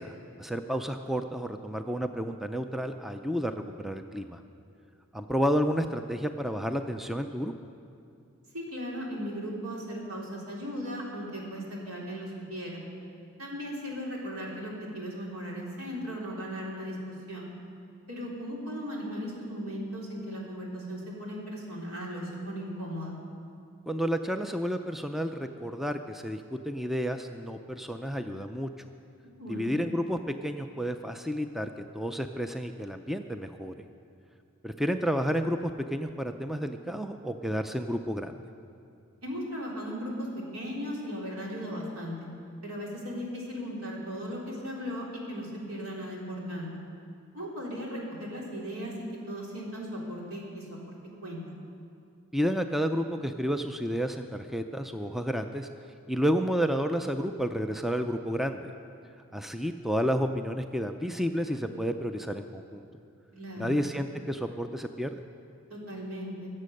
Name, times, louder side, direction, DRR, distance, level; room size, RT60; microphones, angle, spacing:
voice 1, 0.0-4.4 5.1-7.5 23.9-28.9 29.5-33.7 34.6-38.4 52.3-55.7 56.1-58.7 59.3-62.9 63.6-65.2, equal, ahead, 7 dB, 0.4 m, -31 dB
voice 2, 8.5-12.8 13.4-17.5 18.1-23.1 29.2-29.7 39.2-40.3 40.5-42.1 42.6-46.7 47.3-50.9 51.2-51.4 63.3-63.8 65.7-66.5, equal, 80° right, -3 dB, 3.4 m, -37 dB
22.5 x 7.6 x 6.5 m, 2.5 s
head